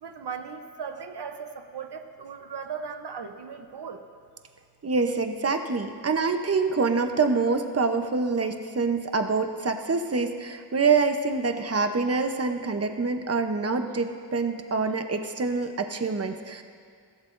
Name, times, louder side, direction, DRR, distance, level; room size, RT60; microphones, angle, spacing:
voice 1, 0.0-4.0, right 6 dB, 85° right, 6 dB, 0.8 m, -37 dB
voice 2, 4.8-16.6, right 4 dB, 40° right, 6 dB, 0.8 m, -26 dB
21.0 x 15.0 x 2.6 m, 2.1 s
wide cardioid pair, 75°, 39 cm